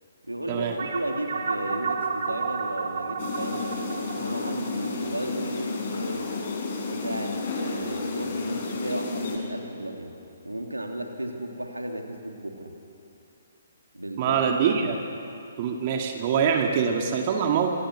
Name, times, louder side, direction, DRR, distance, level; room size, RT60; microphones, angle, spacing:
voice 1, 0.2-6.4 6.9-10.1 10.4-12.7 13.9-14.4, right 1 dB, 85° right, 2 dB, 3.3 m, -34 dB
sound 1, 0.8-5.6, right 5 dB, 55° right, 3.6 m, -32 dB
sound 2, 3.2-9.4, left 3 dB, 45° left, 5.5 m, -31 dB
voice 2, 14.2-15.0 15.6-17.7, right 7 dB, 35° right, 3 dB, 2.2 m, -24 dB
27.5 x 26.0 x 6.5 m, 2.6 s
figure-of-eight pair, 130°, 0 cm